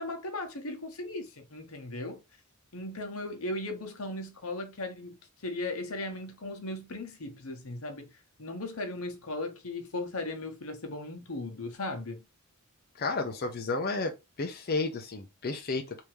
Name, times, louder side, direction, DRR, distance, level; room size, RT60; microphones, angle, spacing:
voice 1, 0.0-2.2 2.7-8.1 8.4-12.2, left 2 dB, 85° left, 1.0 m, -37 dB
voice 2, 13.0-14.1 14.4-16.1, left 3 dB, 45° left, 0.6 m, -32 dB
3.5 x 2.7 x 3.1 m
head